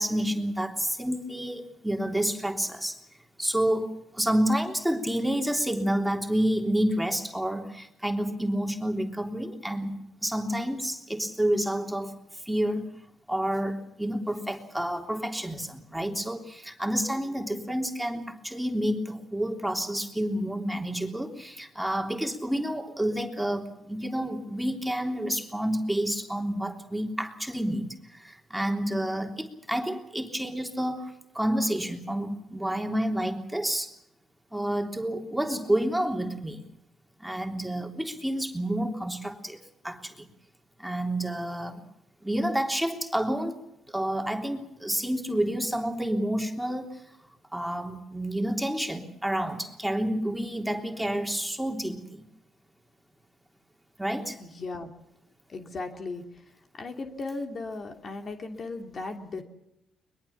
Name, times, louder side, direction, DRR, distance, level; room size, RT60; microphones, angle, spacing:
voice 1, 0.0-3.0 3.4-12.1 12.4-12.9 13.3-33.9 34.5-36.7 37.2-40.3 40.8-41.8 42.2-43.6 43.9-47.0 47.5-52.2 54.0-54.4, right 1 dB, 5° right, 3 dB, 3.4 m, -29 dB
voice 2, 54.4-54.9 55.5-56.4 56.8-59.4, left 3 dB, 45° left, 4 dB, 2.8 m, -36 dB
22.5 x 22.0 x 7.2 m, 0.84 s
cardioid pair, 90°, 0 cm